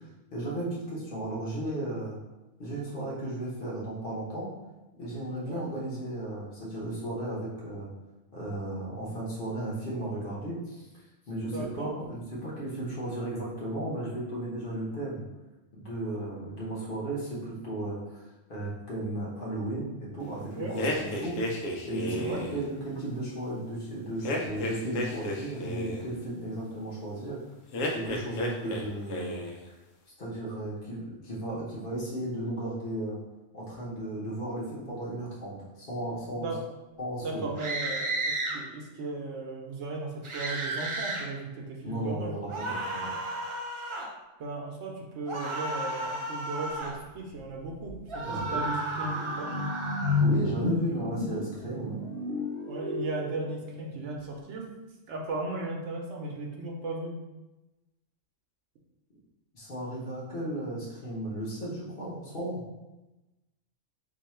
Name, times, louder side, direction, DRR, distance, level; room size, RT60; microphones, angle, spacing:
voice 1, 0.3-2.2 2.6-4.5 5.0-7.9 8.3-10.9 11.3-15.2 15.7-18.2 18.5-21.4 21.8-27.4 27.9-29.4 30.2-33.2 33.5-36.5 37.0-37.5 41.8-43.2 48.2-48.6 50.1-52.0 59.5-62.6, right 1 dB, 50° left, -6 dB, 1.0 m, -35 dB
voice 2, 11.5-11.9 20.6-20.7 22.1-22.4 36.4-36.6 37.2-42.3 44.4-48.0 48.3-49.5 52.7-54.6 55.1-57.1, right 2 dB, 70° right, -1 dB, 1.0 m, -36 dB
sound 1, 20.8-22.6 24.2-26.1 27.7-28.8 29.1-29.6, left 1 dB, 90° left, 1.0 m, -32 dB
sound 2, 37.6-38.6 40.2-41.2 42.5-44.1 45.3-47.0 48.1-50.2, right 2 dB, 55° right, 0.3 m, -33 dB
sound 3, 47.4-47.5 47.8-54.0, left 2 dB, 40° right, 0.8 m, -32 dB
2.8 x 2.3 x 4.2 m, 1.0 s
omnidirectional pair, 1.3 m